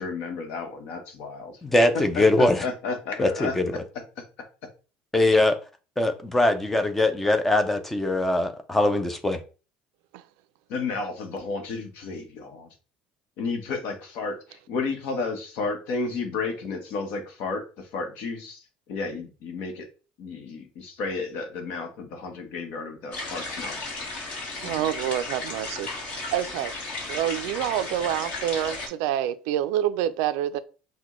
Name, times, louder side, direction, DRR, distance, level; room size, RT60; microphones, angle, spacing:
voice 1, 0.0-1.5 1.9-3.5 10.7-12.7 13.4-18.6 18.9-19.9 20.2-23.8, left 4 dB, 60° left, 1.0 m, -32 dB
voice 2, 1.6-2.6 3.2-3.8 5.1-5.6 6.0-9.4 24.6-24.7, left 2 dB, 5° left, 0.4 m, -22 dB
sound 1, 23.1-28.9, left 2 dB, 40° left, 1.4 m, -34 dB
voice 3, 24.6-26.7 27.1-30.6, right 11 dB, 80° right, 0.4 m, -27 dB
5.9 x 2.2 x 3.0 m
cardioid pair, 170°, 3 cm